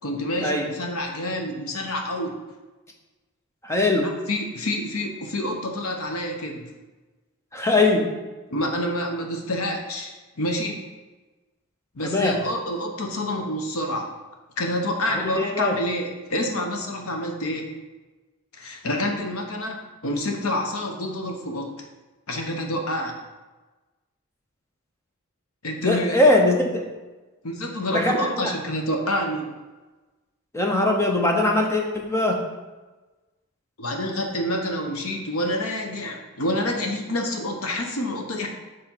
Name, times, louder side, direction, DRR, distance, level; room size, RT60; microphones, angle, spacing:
voice 1, 0.0-2.4 4.0-6.7 8.5-10.8 11.9-14.1 14.6-17.7 18.5-21.7 22.3-23.2 25.6-26.3 27.4-29.5 33.8-38.5, left 1 dB, 75° left, 2 dB, 1.0 m, -28 dB
voice 2, 3.6-4.1 7.5-8.1 12.0-12.4 15.1-15.8 25.8-26.9 27.9-28.5 30.5-32.5, left 2 dB, 10° left, 1 dB, 0.8 m, -21 dB
6.9 x 3.3 x 5.6 m, 1.2 s
head